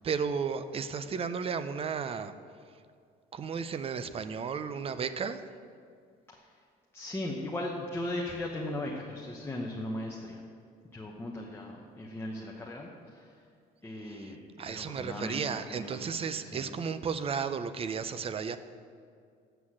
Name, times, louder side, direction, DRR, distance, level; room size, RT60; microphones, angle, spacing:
voice 1, 0.0-2.3 3.3-5.4 14.1-14.3 14.6-18.6, right 6 dB, 35° right, 11 dB, 0.5 m, -34 dB
voice 2, 6.3-6.6 6.9-10.4 10.9-13.4 13.8-14.4 14.7-16.7, left 1 dB, 15° left, -2 dB, 1.0 m, -38 dB
7.9 x 6.2 x 7.5 m, 2.3 s
cardioid pair, 110°, 17 cm